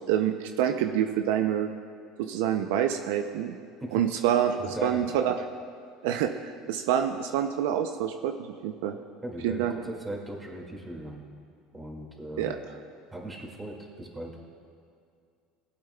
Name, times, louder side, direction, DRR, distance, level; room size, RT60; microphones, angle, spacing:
voice 1, 0.1-1.7 2.2-3.6 3.9-5.4 6.0-9.0 9.4-9.7 12.4-12.6, right 10 dB, 80° right, 6 dB, 0.5 m, -27 dB
voice 2, 4.6-5.1 9.2-11.2 11.7-12.5 13.1-14.4, right 1 dB, 15° right, 0 dB, 2.1 m, -38 dB
18.0 x 8.7 x 2.3 m, 2.3 s
supercardioid pair, 100°, 0 cm